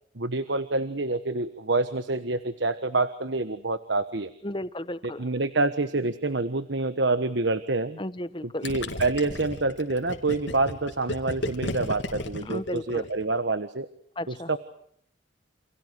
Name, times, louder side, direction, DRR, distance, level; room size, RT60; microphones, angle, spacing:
voice 1, 0.1-4.3 5.0-8.0 8.4-13.9 14.3-14.6, right 3 dB, 70° right, 11 dB, 1.4 m, -27 dB
voice 2, 4.4-5.2 8.0-8.7 12.5-13.0 14.2-14.5, left 1 dB, 25° left, 13 dB, 1.3 m, -34 dB
Gurgling, 8.6-13.3, left 2 dB, 75° left, 3.5 m, -34 dB
29.5 x 28.5 x 4.7 m, 0.68 s
head